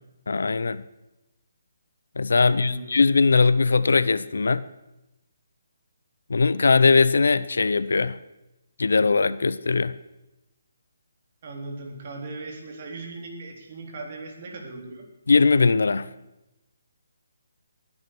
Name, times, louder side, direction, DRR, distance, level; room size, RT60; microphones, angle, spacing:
voice 1, 0.3-0.8 2.2-4.6 6.3-8.2 8.8-10.0 15.3-16.1, left 4 dB, 75° left, 0.8 m, -20 dB
voice 2, 2.5-3.0 11.4-15.0, right 2 dB, 45° right, 3.7 m, -38 dB
19.5 x 9.9 x 6.2 m
hypercardioid pair, 150°, 0 cm